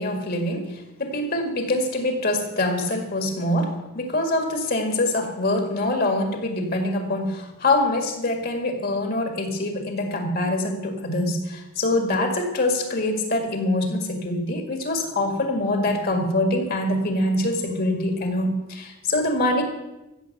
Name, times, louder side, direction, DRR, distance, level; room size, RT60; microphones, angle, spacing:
voice 1, 0.0-19.6, left 1 dB, 50° left, 3 dB, 2.0 m, -24 dB
14.5 x 7.9 x 7.8 m, 1.0 s
head